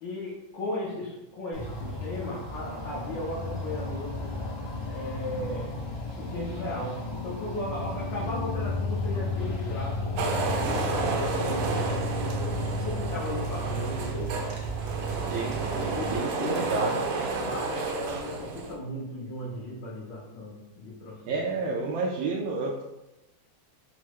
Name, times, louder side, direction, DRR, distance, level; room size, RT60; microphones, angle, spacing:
voice 1, 0.0-4.3 4.9-5.8 6.2-7.0 7.2-10.1 10.6-14.3 15.7-21.4 21.7-21.8, left 1 dB, 75° left, -7 dB, 1.5 m, -36 dB
sound 1, 1.5-16.2, left 1 dB, 35° left, 0.4 m, -33 dB
sound 2, 10.2-18.8, right 3 dB, 70° right, 1.1 m, -31 dB
voice 2, 16.1-16.9 21.3-22.8, right 4 dB, 85° right, -3 dB, 1.3 m, -29 dB
4.4 x 2.0 x 4.5 m, 0.96 s
omnidirectional pair, 2.1 m